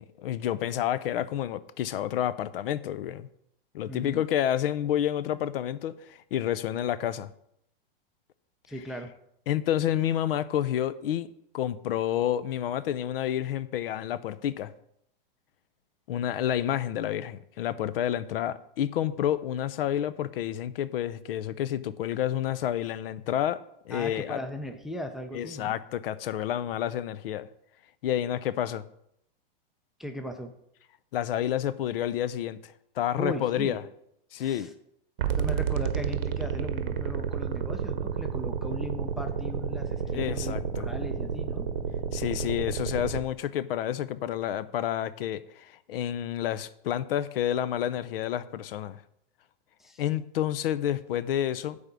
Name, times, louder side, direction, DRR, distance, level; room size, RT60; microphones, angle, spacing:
voice 1, 0.0-3.3 3.7-7.3 9.5-11.3 11.5-14.7 16.1-23.6 23.9-24.4 25.3-27.5 28.0-28.8 31.1-33.8 34.3-34.7 40.1-40.9 42.1-49.0 50.0-51.8, left 11 dB, 75° left, 16 dB, 0.6 m, -29 dB
voice 2, 3.9-4.2 8.7-9.1 23.9-25.7 30.0-30.5 33.2-33.8 34.4-34.7 35.4-41.7 49.8-50.0, equal, ahead, 6 dB, 0.4 m, -38 dB
sound 1, 35.2-43.2, right 7 dB, 75° right, 1.0 m, -30 dB
9.7 x 3.6 x 6.8 m, 0.75 s
supercardioid pair, 145°, 29 cm